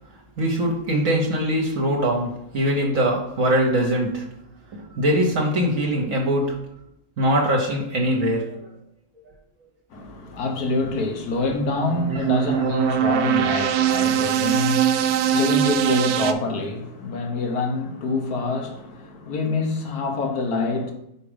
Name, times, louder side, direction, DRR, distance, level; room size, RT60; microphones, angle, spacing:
voice 1, 0.4-4.3 4.7-6.6 7.2-8.6, equal, 65° right, 1.3 m, -22 dB
voice 2, 9.9-20.9, left 3 dB, 85° left, 1.6 m, -26 dB
sound 1, 11.5-16.3, right 10 dB, 85° right, 1.1 m, -22 dB
5.0 x 4.9 x 5.0 m
omnidirectional pair, 1.6 m